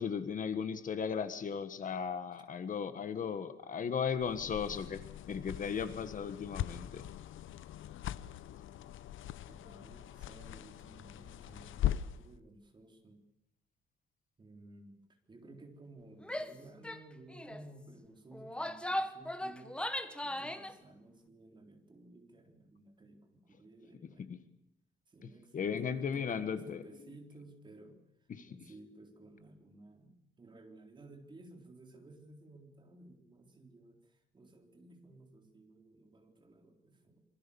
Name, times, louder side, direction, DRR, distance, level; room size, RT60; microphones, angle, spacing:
voice 1, 0.0-5.0 5.3-7.0 24.3-24.4 25.5-26.8 28.3-28.5, left 7 dB, 40° left, 11 dB, 1.5 m, -36 dB
sound 1, 4.2-12.3, left 12 dB, 75° left, 0.9 m, -40 dB
voice 2, 9.3-13.2 14.4-15.0 15.3-19.8 20.2-24.3 25.1-37.2, right 2 dB, 20° right, 3 dB, 4.0 m, -56 dB
Female speech woman speaking / Yell, 16.2-16.5 16.8-17.0 17.3-17.6 18.3-20.7, left 1 dB, 5° left, 1.3 m, -38 dB
26.5 x 24.5 x 7.1 m, 0.82 s
cardioid pair, 175°, 20 cm